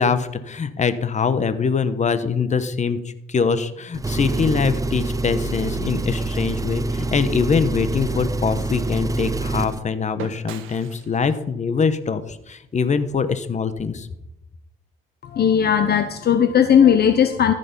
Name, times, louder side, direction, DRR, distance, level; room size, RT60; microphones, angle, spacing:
voice 1, 0.0-14.1, left 5 dB, 35° left, 12 dB, 1.1 m, -23 dB
Engine, 3.9-9.8, right 2 dB, 15° right, 0.7 m, -26 dB
sound 1, 9.6-13.5, right 8 dB, 85° right, 1.0 m, -43 dB
voice 2, 15.2-17.5, left 8 dB, 55° left, 10 dB, 0.8 m, -17 dB
14.0 x 6.8 x 5.4 m, 0.86 s
cardioid pair, 90°, 20 cm